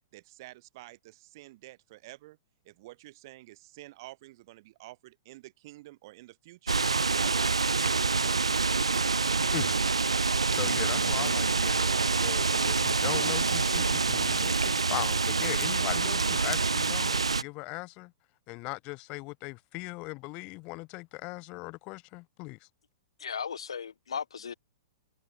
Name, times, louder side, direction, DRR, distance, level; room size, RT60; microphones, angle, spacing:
voice 1, 0.1-2.4 2.7-6.8 7.1-8.6, right 18 dB, 45° right, 3.6 m, -49 dB
sound 1, 6.7-17.4, right 4 dB, 80° right, 0.6 m, -26 dB
voice 2, 10.5-18.1 18.5-22.7, left 25 dB, 35° left, 6.2 m, -39 dB
voice 3, 23.2-24.5, left 7 dB, 70° left, 0.7 m, -36 dB
figure-of-eight pair, 110°, 3 cm